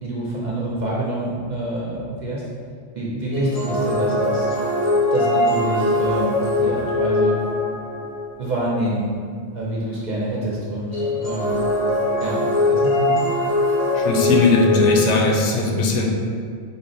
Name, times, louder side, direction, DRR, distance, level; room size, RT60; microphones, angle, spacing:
voice 1, 0.0-2.4 2.9-4.6 5.1-7.4 8.4-9.1 9.5-11.7 12.2-13.2, right 1 dB, 50° right, -5 dB, 0.5 m, -26 dB
sound 1, 3.3-8.4 10.9-15.0, left 2 dB, 45° left, 0.5 m, -21 dB
voice 2, 13.9-16.1, left 3 dB, 80° left, 0 dB, 0.9 m, -19 dB
4.1 x 2.1 x 3.9 m, 2.1 s
omnidirectional pair, 1.2 m